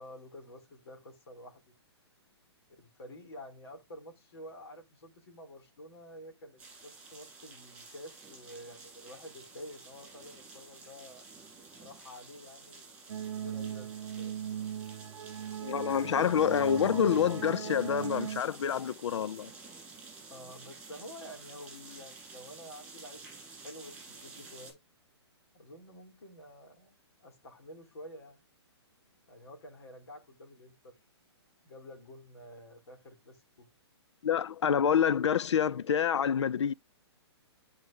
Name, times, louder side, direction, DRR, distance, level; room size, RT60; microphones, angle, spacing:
voice 1, 0.0-1.6 2.8-11.2 11.8-12.8 13.4-14.5 20.3-24.8 25.5-27.0 27.2-28.4 29.3-31.0 31.6-33.7, left 1 dB, 65° left, 3.5 m, -49 dB
sound 1, 6.6-24.7, right 4 dB, 10° right, 5.6 m, -51 dB
sound 2, 13.1-18.4, right 10 dB, 80° right, 0.5 m, -38 dB
voice 2, 15.6-19.5 34.2-36.7, left 8 dB, 90° left, 0.4 m, -27 dB
11.5 x 5.1 x 2.6 m
hypercardioid pair, 160°, 14 cm